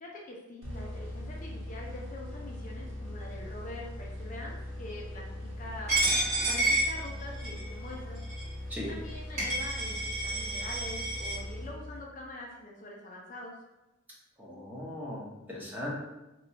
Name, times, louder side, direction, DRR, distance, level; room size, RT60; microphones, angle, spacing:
voice 1, 0.0-6.0 6.4-8.2 8.6-13.5, left 1 dB, 40° left, -1 dB, 0.5 m, -44 dB
sound 1, 0.6-12.3, left 1 dB, 85° right, 1.0 m, -40 dB
Coin (dropping), 5.9-7.6 8.3-8.4 9.1-9.2 9.4-11.3, right 1 dB, 35° right, 1.4 m, -29 dB
voice 2, 14.4-16.0, left 1 dB, 10° right, -5 dB, 0.7 m, -38 dB
2.9 x 2.3 x 3.9 m, 0.99 s
head